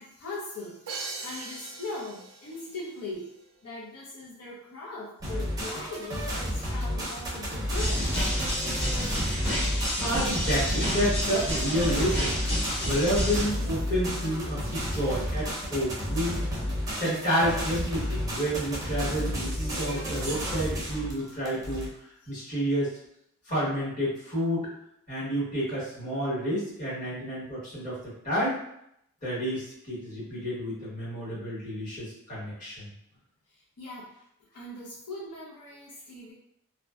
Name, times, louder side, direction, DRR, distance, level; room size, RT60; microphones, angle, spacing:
voice 1, 0.0-3.3 3.6-9.0 22.2-22.3 33.8-34.1 34.5-36.3, left 2 dB, 85° left, -5 dB, 0.6 m, -40 dB
Crash cymbal, 0.9-2.7, right 3 dB, 80° right, 0.5 m, -39 dB
sound 1, 5.2-21.9, equal, 15° right, 0.6 m, -32 dB
sound 2, 7.7-13.4, equal, 55° left, 1.4 m, -29 dB
voice 2, 10.0-12.4 12.8-16.4 16.9-21.9 22.3-22.9 23.5-24.7 25.1-28.0 28.2-28.6 29.2-32.9, equal, 35° left, -10 dB, 1.4 m, -30 dB
2.6 x 2.1 x 2.3 m, 0.75 s
head